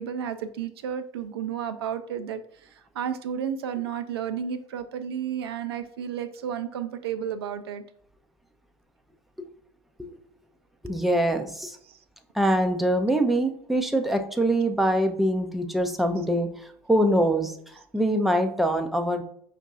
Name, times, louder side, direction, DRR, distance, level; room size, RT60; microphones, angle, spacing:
voice 1, 0.0-7.8 11.8-12.0 16.2-16.3, right 8 dB, 65° right, 10 dB, 0.4 m, -32 dB
voice 2, 10.8-11.8 12.3-19.2, right 1 dB, ahead, 5 dB, 0.5 m, -24 dB
5.2 x 2.4 x 3.7 m, 0.66 s
figure-of-eight pair, 70°, 14 cm